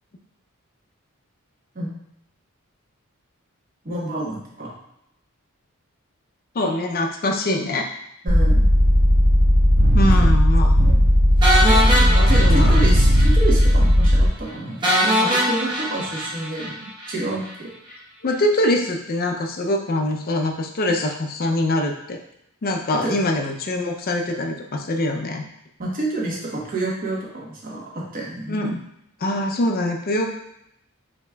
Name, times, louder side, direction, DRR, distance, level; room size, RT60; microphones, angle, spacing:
voice 1, 3.8-4.7 8.2-8.6 10.8-10.9 11.6-17.7 22.9-23.1 25.8-28.6, right 2 dB, 40° right, -4 dB, 1.0 m, -29 dB
voice 2, 6.5-7.9 9.9-10.8 12.2-12.8 18.2-22.2 22.6-25.4 28.5-28.8 29.2-30.4, left 1 dB, 45° left, 3 dB, 0.5 m, -23 dB
sound 1, 8.3-14.3, equal, 70° right, 1.5 m, -15 dB
sound 2, 11.4-13.3 13.6-13.7 14.0-14.1 14.8-17.1, equal, 20° right, 0.9 m, -22 dB
4.9 x 3.6 x 2.3 m, 0.78 s
head